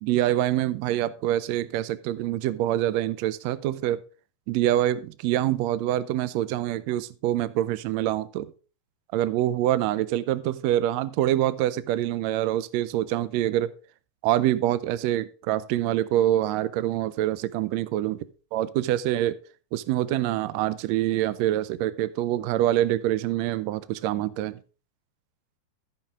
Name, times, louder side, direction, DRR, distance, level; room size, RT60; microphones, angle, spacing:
voice 1, 0.0-4.0 4.5-8.5 9.1-13.7 14.2-18.2 18.5-19.4 19.7-24.6, right 13 dB, 90° right, 16 dB, 1.5 m, -25 dB
15.0 x 5.7 x 3.6 m, 0.36 s
omnidirectional pair, 3.7 m